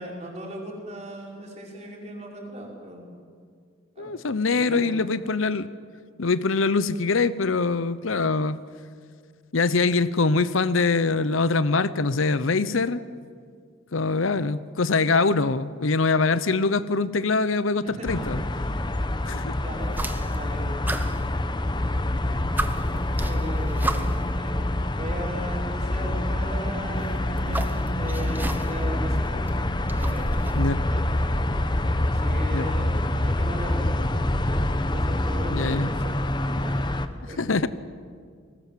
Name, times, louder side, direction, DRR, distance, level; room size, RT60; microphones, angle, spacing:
voice 1, 0.0-3.1 4.0-4.1 4.5-4.9 17.8-18.3 19.6-19.9 20.3-20.7 23.2-24.6 25.0-27.6 28.0-29.4 29.9-30.3 30.9-31.1 32.1-32.9 33.2-33.9 34.9-37.5, right 1 dB, 35° right, -2 dB, 5.2 m, -37 dB
voice 2, 4.0-5.7 6.2-8.6 9.5-13.0 13.9-18.4 19.3-19.6 30.5-30.8 32.5-32.6 35.5-35.9 37.4-37.7, left 3 dB, 80° left, 15 dB, 0.8 m, -23 dB
sound 1, 18.1-37.1, left 1 dB, 20° left, 0.9 m, -26 dB
sound 2, 19.9-20.5 20.8-21.9 22.2-22.3 22.6-24.3 25.4-25.5 26.8-28.9 29.2-30.7, right 1 dB, 10° right, 1.0 m, -33 dB
29.5 x 20.0 x 7.5 m, 2.1 s
head